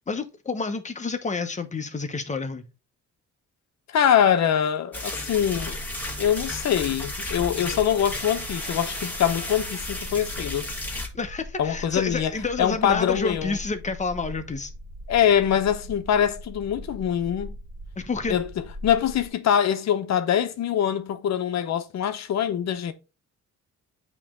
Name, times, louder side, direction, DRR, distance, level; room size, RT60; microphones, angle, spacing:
voice 1, 0.1-2.7 11.1-14.7 18.0-18.4, left 4 dB, 25° left, 0.9 m, -29 dB
voice 2, 3.9-5.8 6.2-10.6 11.6-12.3 12.6-13.6 15.1-17.6 18.3-22.9, left 9 dB, 65° left, 0.8 m, -23 dB
sound 1, 4.9-11.1, left 1 dB, 5° left, 1.8 m, -33 dB
sound 2, 5.3-19.3, equal, 35° right, 1.1 m, -41 dB
8.3 x 3.1 x 3.7 m
cardioid pair, 90°, 30 cm